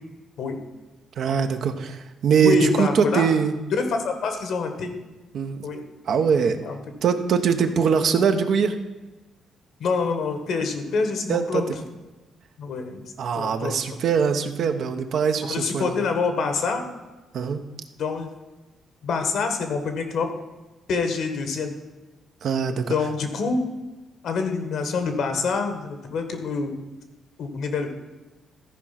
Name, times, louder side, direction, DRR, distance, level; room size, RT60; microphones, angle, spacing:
voice 1, 1.2-3.5 5.3-5.6 6.1-6.6 7.0-8.7 11.3-11.6 13.2-15.9 17.3-17.6 22.4-22.9, right 6 dB, 70° right, 7 dB, 0.9 m, -22 dB
voice 2, 2.4-3.3 3.7-4.9 5.6-5.8 6.6-6.7 7.6-7.7 9.8-11.6 12.6-13.7 15.4-16.9 18.0-18.3 19.0-20.3 20.9-21.7 22.9-23.6 24.2-26.8 27.4-27.9, left 4 dB, 75° left, 6 dB, 1.5 m, -26 dB
13.5 x 4.9 x 5.9 m, 1.1 s
cardioid pair, 95°, 0 cm